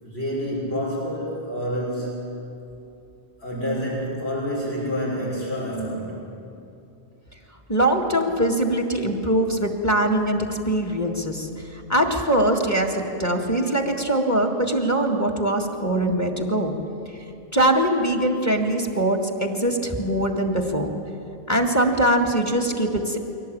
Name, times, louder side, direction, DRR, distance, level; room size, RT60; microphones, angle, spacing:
voice 1, 0.0-2.2 3.4-6.2, equal, 70° left, -6 dB, 6.8 m, -28 dB
voice 2, 7.7-16.7 17.5-20.9 21.5-23.2, right 1 dB, 15° left, 3 dB, 2.0 m, -22 dB
23.0 x 18.0 x 8.7 m, 2.7 s
omnidirectional pair, 1.1 m